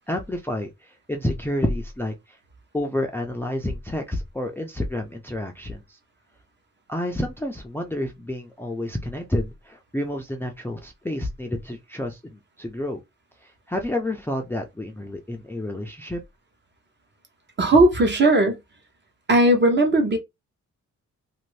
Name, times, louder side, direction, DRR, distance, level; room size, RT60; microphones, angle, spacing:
voice 1, 0.1-0.7 1.1-2.1 2.7-5.8 6.9-13.0 13.7-16.2, left 1 dB, 5° left, 0.5 m, -29 dB
voice 2, 17.6-18.6 19.3-20.2, right 1 dB, 35° right, 0.9 m, -17 dB
2.6 x 2.6 x 3.2 m
cardioid pair, 115°, 31 cm